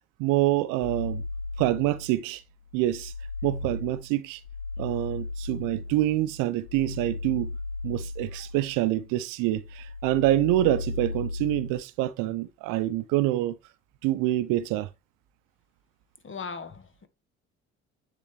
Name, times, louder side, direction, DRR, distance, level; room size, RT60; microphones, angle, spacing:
voice 1, 0.2-1.2 1.6-2.4 2.7-3.1 3.4-4.4 4.8-7.5 7.8-13.6 14.0-14.9, right 15 dB, 75° right, 0.7 m, -26 dB
sound 1, 0.8-2.2 2.6-9.2 9.5-11.8, left 3 dB, 75° left, 1.7 m, -36 dB
voice 2, 16.2-17.1, left 5 dB, 40° left, 1.5 m, -38 dB
10.0 x 3.9 x 3.1 m
hypercardioid pair, 55°, 33 cm